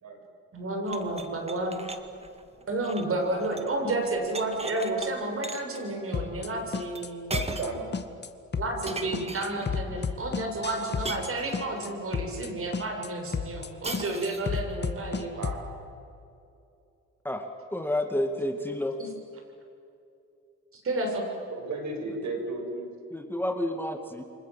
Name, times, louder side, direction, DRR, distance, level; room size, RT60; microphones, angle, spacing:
voice 1, 0.5-1.7 2.7-7.4 8.6-15.4 19.0-19.1 20.7-21.3, right 2 dB, 45° right, 3 dB, 7.4 m, -31 dB
sound 1, 0.9-3.8 4.0-5.1 5.4-5.8 6.9-7.0 7.3-7.9 8.9-9.7 11.0-11.9 13.8-14.6, right 3 dB, 20° right, 2.2 m, -39 dB
sound 2, 6.1-6.5 6.7-7.1 7.3-7.7 7.9-8.3 8.5-8.9 9.1-11.3 11.5-11.9 12.1-12.5 12.7-13.1 13.3-13.7 13.9-15.6, left 6 dB, 35° left, 1.9 m, -32 dB
voice 2, 7.3-7.9 9.9-10.0 15.4-15.6 21.5-22.9, right 3 dB, 65° right, 5 dB, 6.0 m, -34 dB
voice 3, 17.2-19.0 23.1-24.2, left 1 dB, 5° left, 5 dB, 2.2 m, -30 dB
29.0 x 25.0 x 7.7 m, 2.7 s
cardioid pair, 90°, 30 cm